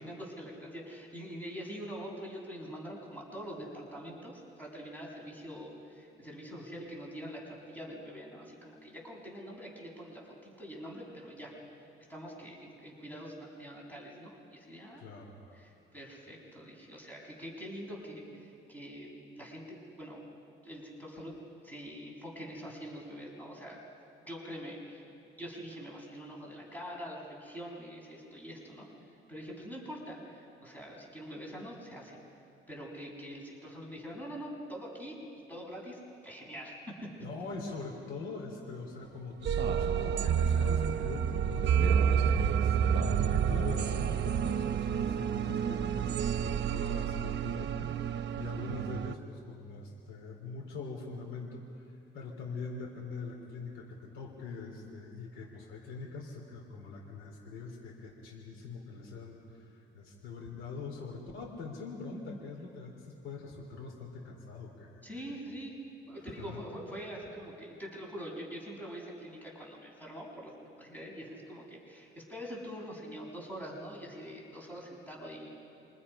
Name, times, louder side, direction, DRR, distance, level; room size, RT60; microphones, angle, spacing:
voice 1, 0.0-11.5 12.1-15.0 15.5-19.1 19.4-20.2 20.6-21.3 21.6-23.8 24.2-25.0 25.3-28.9 29.3-32.2 32.7-35.2 35.5-37.1 65.0-65.7 66.1-70.5 70.8-75.8, equal, 10° left, -2 dB, 7.0 m, -44 dB
voice 2, 15.0-15.4 37.2-42.0 42.5-65.4 66.2-66.6, left 4 dB, 85° left, -1 dB, 3.5 m, -43 dB
sound 1, 39.4-49.1, right 8 dB, 60° right, 1.0 m, -29 dB
28.0 x 25.0 x 5.7 m, 2.6 s
cardioid pair, 90°, 20 cm